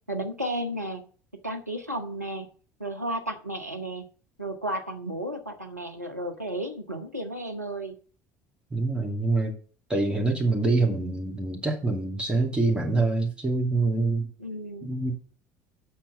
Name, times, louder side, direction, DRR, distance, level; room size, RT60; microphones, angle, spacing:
voice 1, 0.1-1.0 1.4-2.5 2.8-4.0 4.4-7.9 14.4-14.9, right 1 dB, 90° right, 3 dB, 1.0 m, -33 dB
voice 2, 8.7-9.6 9.9-14.3 14.8-15.1, right 3 dB, 10° right, 0 dB, 2.5 m, -25 dB
8.0 x 5.8 x 7.2 m, 0.42 s
figure-of-eight pair, 65°, 8 cm